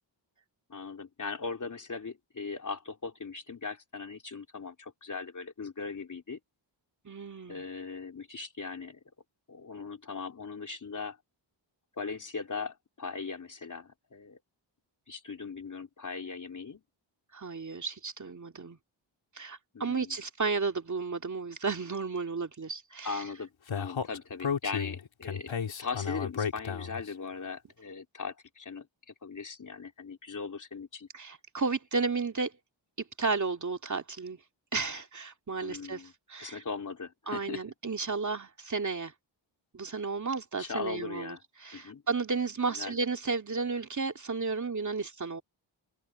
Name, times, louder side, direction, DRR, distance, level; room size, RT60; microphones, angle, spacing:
voice 1, 0.7-6.4 7.5-9.0 9.5-11.2 12.0-14.4 15.1-16.8 19.7-20.2 23.0-28.9 29.2-31.1 35.6-37.6 40.6-41.4 41.7-42.0 42.7-43.0, left 4 dB, 40° left, 3.5 m, -39 dB
voice 2, 7.0-7.6 17.3-18.8 19.3-23.2 31.1-32.5 33.2-34.4 34.7-36.0 36.3-36.6 37.3-39.1 39.7-45.4, right 4 dB, 40° right, 2.6 m, -33 dB
Speech, 23.7-27.1, left 6 dB, 75° left, 3.8 m, -33 dB
open air
wide cardioid pair, 130°, 46 cm